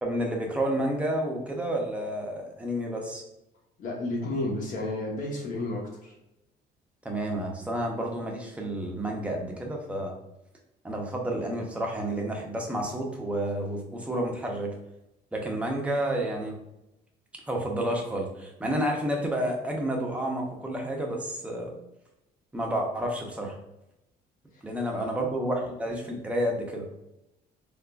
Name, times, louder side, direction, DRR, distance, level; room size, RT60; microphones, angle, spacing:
voice 1, 0.0-3.2 7.0-10.1 10.8-14.7 15.3-16.6 17.5-21.7 22.5-23.6 24.6-26.8, right 1 dB, 5° right, 0 dB, 0.7 m, -30 dB
voice 2, 3.8-6.1 24.9-25.2, left 2 dB, 50° left, -1 dB, 1.0 m, -32 dB
3.6 x 2.4 x 2.4 m, 0.90 s
cardioid pair, 110°, 17 cm